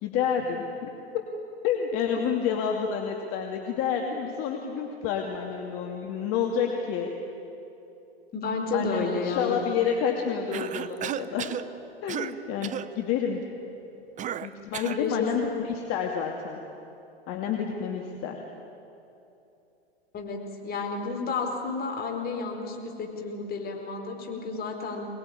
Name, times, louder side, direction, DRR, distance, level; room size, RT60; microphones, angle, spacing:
voice 1, 0.0-1.2 1.6-7.1 8.7-11.6 12.0-13.5 14.4-16.6 17.3-18.4, left 7 dB, 45° left, 2 dB, 2.5 m, -29 dB
voice 2, 8.3-9.6 14.9-15.5 20.1-25.1, left 4 dB, 30° left, 2 dB, 4.6 m, -31 dB
Cough, 10.5-11.7 12.1-12.4 12.6-12.9 14.2-15.1, right 10 dB, 25° right, 0.7 m, -33 dB
24.5 x 20.0 x 10.0 m, 2.9 s
hypercardioid pair, 105°, 32 cm